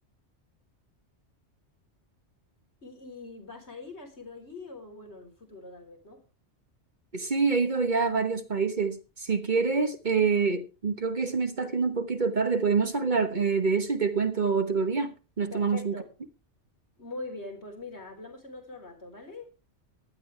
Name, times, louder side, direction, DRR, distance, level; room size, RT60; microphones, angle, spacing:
voice 1, 2.8-6.2 15.5-16.1 17.0-19.5, left 3 dB, 65° left, 4.4 m, -43 dB
voice 2, 7.1-15.9, right 5 dB, 40° right, 1.4 m, -26 dB
16.5 x 11.5 x 3.4 m
omnidirectional pair, 1.2 m